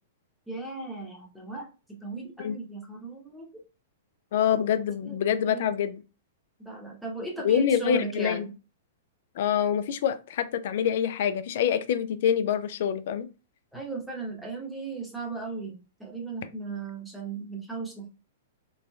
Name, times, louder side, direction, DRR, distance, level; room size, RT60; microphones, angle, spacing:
voice 1, 0.5-3.6 5.0-5.2 5.4-5.7 6.6-8.5 13.7-18.1, right 3 dB, ahead, 1.1 m, -37 dB
voice 2, 4.3-6.0 7.4-8.5 9.4-13.3, left 8 dB, 60° left, 0.4 m, -26 dB
3.5 x 3.0 x 2.3 m
hypercardioid pair, 120°, 0 cm